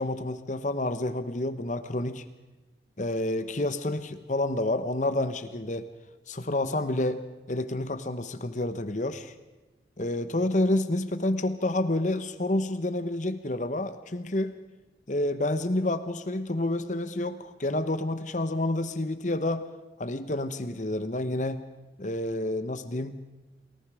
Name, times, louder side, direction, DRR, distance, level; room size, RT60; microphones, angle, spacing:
voice 1, 0.0-2.2 3.0-5.9 6.3-9.3 10.0-14.5 15.1-19.7 20.0-21.6 22.0-23.2, left 1 dB, 40° left, 11 dB, 1.1 m, -29 dB
29.5 x 20.5 x 4.9 m, 1.2 s
head